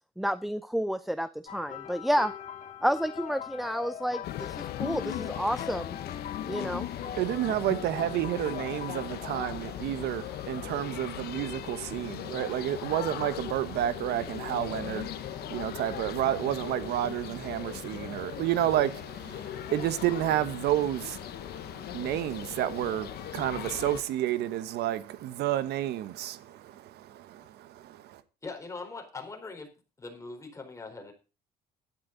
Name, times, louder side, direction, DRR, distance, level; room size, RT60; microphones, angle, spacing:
voice 1, 0.2-2.3 2.8-6.0 6.5-6.9, equal, ahead, 0.5 m, -30 dB
sound 1, 1.5-9.7 10.6-10.8 12.7-12.8, left 9 dB, 45° left, 1.8 m, -42 dB
sound 2, 4.2-24.0, left 12 dB, 70° left, 1.0 m, -38 dB
voice 2, 6.5-26.4 27.2-28.2, right 12 dB, 75° right, 1.1 m, -30 dB
voice 3, 28.4-29.7 30.0-31.1, left 3 dB, 20° left, 4.3 m, -41 dB
12.5 x 12.0 x 4.0 m
cardioid pair, 110°, 17 cm